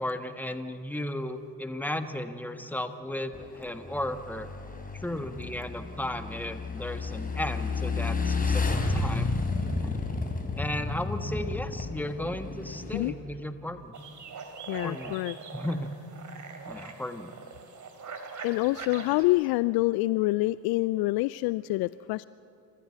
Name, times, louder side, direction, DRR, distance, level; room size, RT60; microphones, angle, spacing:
voice 1, 0.0-4.5 5.0-9.3 9.8-10.0 10.6-13.9 14.8-15.1 15.5-15.9 16.7-17.3, left 1 dB, 5° left, 8 dB, 1.5 m, -35 dB
Motorcycle / Engine, 3.3-13.1, left 3 dB, 20° left, 3.7 m, -31 dB
sound 1, 13.9-19.3, right 5 dB, 40° right, 3.0 m, -42 dB
voice 2, 14.7-15.4 18.4-22.2, left 20 dB, 60° left, 18 dB, 0.5 m, -26 dB
28.5 x 14.0 x 8.3 m, 2.6 s
hypercardioid pair, 55°, 43 cm